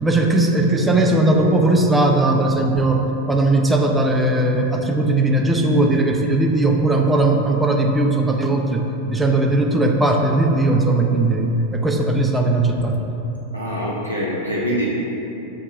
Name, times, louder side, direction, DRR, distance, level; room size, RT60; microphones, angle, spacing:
voice 1, 0.0-13.0, right 2 dB, 10° right, 1 dB, 0.4 m, -18 dB
voice 2, 13.5-14.9, equal, 85° left, -5 dB, 0.5 m, -24 dB
7.6 x 2.7 x 2.4 m, 3.0 s
figure-of-eight pair, 90°, 0 cm